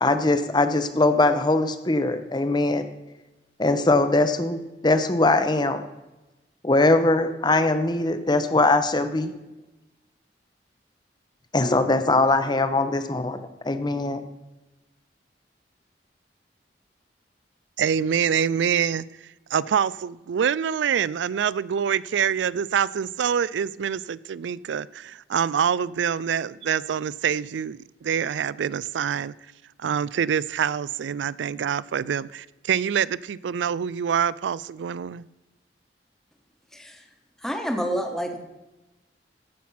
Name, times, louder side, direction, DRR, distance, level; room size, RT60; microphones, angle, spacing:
voice 1, 0.0-2.8 3.6-5.8 6.6-9.3 11.5-14.2, left 2 dB, 25° left, 10 dB, 0.8 m, -21 dB
voice 2, 17.8-29.3 29.8-35.3, right 8 dB, 90° right, 20 dB, 0.4 m, -25 dB
voice 3, 36.7-37.0 37.4-38.4, equal, 5° left, 3 dB, 1.2 m, -28 dB
15.0 x 6.0 x 5.7 m, 1.0 s
head